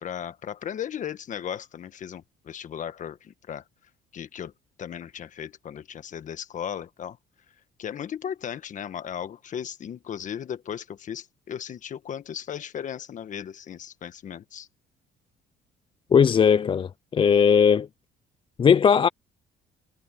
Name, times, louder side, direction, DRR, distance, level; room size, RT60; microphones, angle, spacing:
voice 1, 0.0-3.6 4.1-4.5 4.8-7.2 7.8-14.7, left 9 dB, 50° left, 1.5 m, -36 dB
voice 2, 16.1-17.9 18.6-19.1, left 7 dB, 30° left, 0.5 m, -18 dB
cardioid pair, 110°, 17 cm